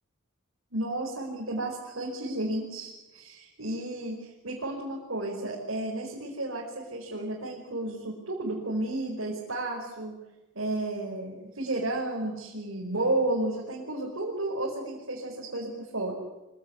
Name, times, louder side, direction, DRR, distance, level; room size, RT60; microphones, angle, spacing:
voice 1, 0.7-10.2 10.5-16.1, right 2 dB, 80° right, -4 dB, 5.2 m, -32 dB
25.0 x 17.5 x 9.7 m, 1.0 s
head